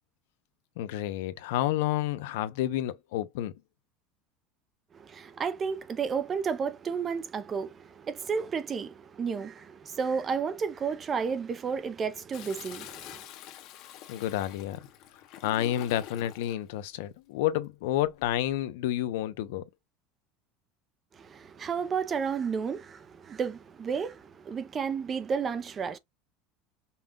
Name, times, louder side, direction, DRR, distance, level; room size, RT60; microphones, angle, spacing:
voice 1, 0.8-3.5 14.1-14.9 15.4-19.7, left 13 dB, 85° left, 0.7 m, -30 dB
voice 2, 4.9-13.2 21.1-26.0, right 6 dB, 20° right, 0.6 m, -32 dB
Toilet flush, 12.3-16.6 18.0-18.5, left 12 dB, 50° left, 1.0 m, -46 dB
5.5 x 2.3 x 3.7 m
cardioid pair, 165°, 0 cm